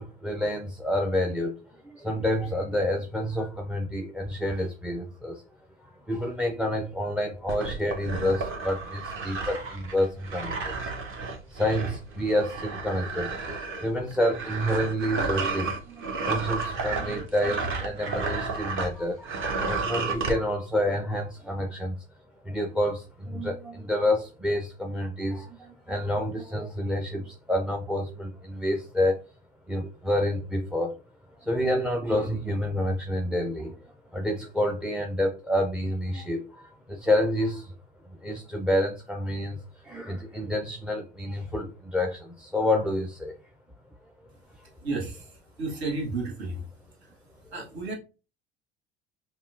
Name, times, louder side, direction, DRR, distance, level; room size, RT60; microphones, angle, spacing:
voice 1, 0.0-5.4 5.8-10.9 11.5-13.4 13.8-19.4 19.7-22.0 22.4-29.2 29.7-31.0 31.4-33.8 34.1-37.8 38.1-43.4 44.6-44.7 47.6-47.7, left 1 dB, 5° right, 0.4 m, -28 dB
sound 1, 7.5-18.9 19.2-20.4, right 4 dB, 40° right, 1.1 m, -32 dB
voice 2, 44.8-45.2 45.6-46.6 47.5-48.0, right 3 dB, 75° right, 1.3 m, -32 dB
5.4 x 2.3 x 2.4 m
figure-of-eight pair, 70°, 31 cm